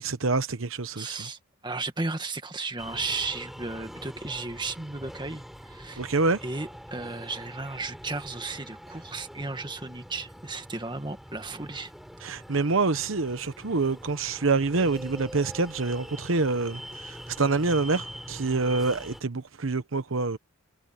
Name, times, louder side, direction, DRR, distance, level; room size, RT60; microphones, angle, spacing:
voice 1, 0.0-1.3 6.0-6.4 12.2-20.4, right 3 dB, 70° right, 1.0 m, -26 dB
voice 2, 0.9-11.9, right 3 dB, 20° right, 1.7 m, -35 dB
sound 1, 2.8-19.2, equal, ahead, 5.7 m, -44 dB
head